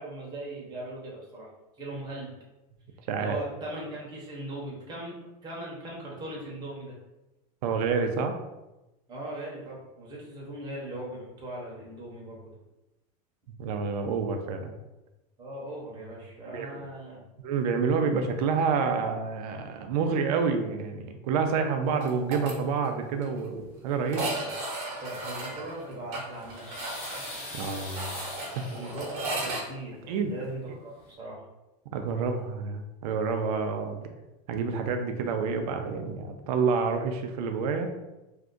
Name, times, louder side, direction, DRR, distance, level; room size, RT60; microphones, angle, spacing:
voice 1, 0.0-1.5 1.8-2.3 3.2-7.0 9.1-12.4 15.4-17.2 24.2-24.5 25.0-26.6 28.7-31.4, right 1 dB, 20° right, -4 dB, 0.8 m, -39 dB
voice 2, 7.6-8.4 13.6-14.7 16.5-16.8 17.4-24.3 27.5-28.2 28.5-28.7 30.1-30.3 31.9-34.1 34.5-37.9, right 5 dB, 70° right, 5 dB, 0.5 m, -28 dB
sound 1, 22.0-22.5 22.8-22.9 23.2-23.3 24.1-29.6, right 2 dB, 45° right, 0.9 m, -35 dB
sound 2, 26.1-29.4 30.6-30.7 31.0-31.1, left 2 dB, 35° left, 0.9 m, -42 dB
2.6 x 2.3 x 3.7 m, 1.0 s
supercardioid pair, 160°, 20 cm